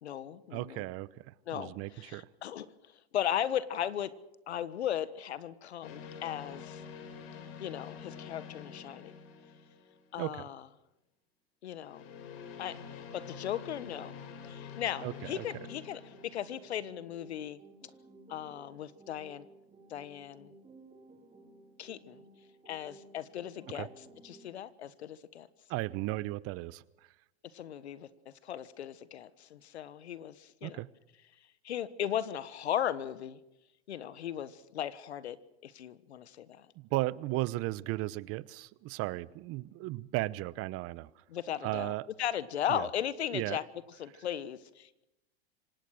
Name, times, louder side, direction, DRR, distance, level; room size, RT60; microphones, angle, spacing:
voice 1, 0.0-0.9 1.5-4.1 4.5-6.8 7.6-9.1 10.1-10.7 11.6-12.1 12.6-14.2 14.4-17.6 18.3-19.5 19.9-20.5 21.8-22.2 22.7-25.5 27.5-30.8 31.6-33.4 33.9-35.4 35.6-36.7 41.3-43.6 44.0-45.0, left 10 dB, 90° left, 1.4 m, -37 dB
voice 2, 0.5-2.3 10.2-10.4 15.0-15.4 23.7-23.9 25.7-26.8 30.6-30.9 36.8-41.1 41.6-42.1 42.7-42.9 43.3-43.6, right 19 dB, 45° right, 0.9 m, -35 dB
sound 1, 5.8-10.3 11.8-16.6, left 7 dB, 65° left, 4.7 m, -47 dB
sound 2, 14.6-24.6, right 2 dB, 20° right, 6.3 m, -57 dB
26.5 x 18.5 x 6.5 m
hypercardioid pair, 110°, 32 cm